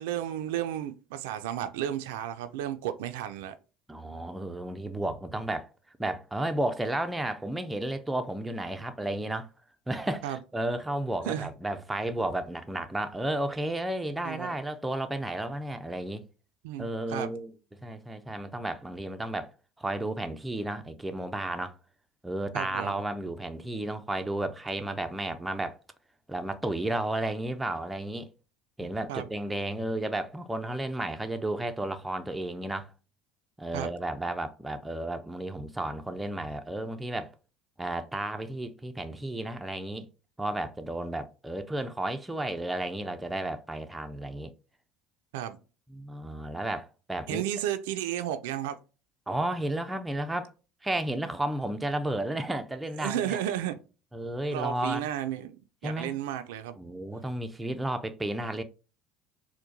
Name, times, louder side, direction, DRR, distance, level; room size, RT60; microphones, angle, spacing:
voice 1, 0.0-3.5 10.2-10.4 11.3-11.5 14.2-14.5 16.6-17.3 22.5-23.0 28.8-29.3 33.7-33.9 45.3-45.6 47.3-48.8 53.0-53.8 54.5-56.8, right 11 dB, 80° right, 0.4 m, -33 dB
voice 2, 3.9-5.7 6.0-9.5 9.9-16.2 16.8-17.5 17.8-19.5 19.8-21.8 22.2-25.8 26.3-28.3 28.8-32.9 33.6-37.3 37.8-40.1 40.4-44.5 45.9-47.4 49.3-50.5 50.8-53.4 54.1-55.0 55.8-56.2 56.7-58.6, right 1 dB, 10° right, 0.5 m, -33 dB
4.4 x 2.1 x 2.6 m
supercardioid pair, 85°, 0 cm